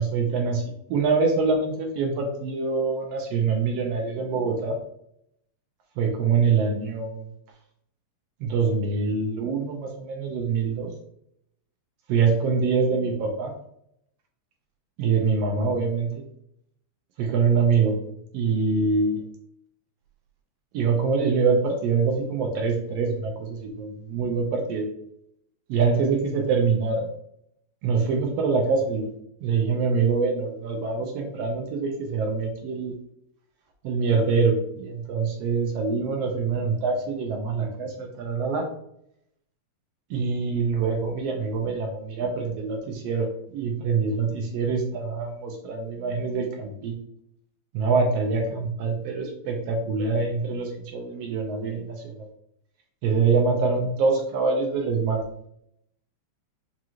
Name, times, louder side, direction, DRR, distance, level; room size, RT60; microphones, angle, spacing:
voice 1, 0.0-4.8 6.0-7.3 8.4-10.9 12.1-13.5 15.0-16.1 17.2-18.0 18.3-19.2 20.7-24.9 25.7-27.1 27.8-29.1 29.4-32.9 33.8-38.7 40.1-46.9 47.7-52.2 53.0-55.2, right 4 dB, 80° right, 2 dB, 1.5 m, -25 dB
5.0 x 2.4 x 2.9 m, 0.74 s
omnidirectional pair, 3.3 m